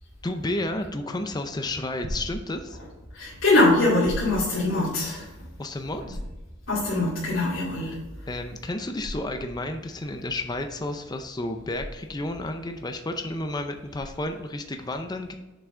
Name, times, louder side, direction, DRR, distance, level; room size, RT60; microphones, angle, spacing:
voice 1, 0.2-2.8 5.6-6.2 8.3-15.3, left 1 dB, 20° left, 6 dB, 0.5 m, -31 dB
sound 1, 2.0-14.5, equal, 30° right, 2.6 m, -40 dB
voice 2, 3.1-5.3 6.0-6.2 6.7-8.0 8.2-8.4, left 2 dB, 80° left, -8 dB, 2.5 m, -23 dB
7.1 x 5.8 x 3.7 m, 1.1 s
head